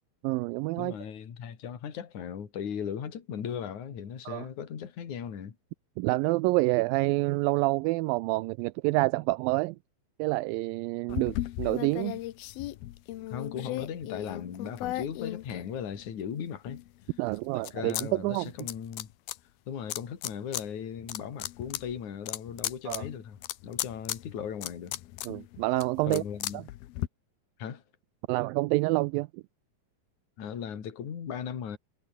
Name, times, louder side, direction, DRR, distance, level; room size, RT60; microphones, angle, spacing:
voice 1, 0.2-0.9 4.3-4.5 6.0-9.8 10.2-12.2 17.2-18.5 22.9-23.0 25.3-26.2 28.3-29.4, right 22 dB, 80° right, 2.1 m, -28 dB
voice 2, 0.8-5.6 11.1-11.4 13.3-16.8 17.5-19.1 19.7-23.4 23.6-24.9 26.1-26.6 27.6-27.8 30.4-31.8, left 8 dB, 50° left, 4.0 m, -37 dB
sound 1, 11.1-16.2 16.7-18.1 18.3-19.4 19.9-20.6 21.0-27.1, left 15 dB, 75° left, 2.8 m, -37 dB
omnidirectional pair, 4.5 m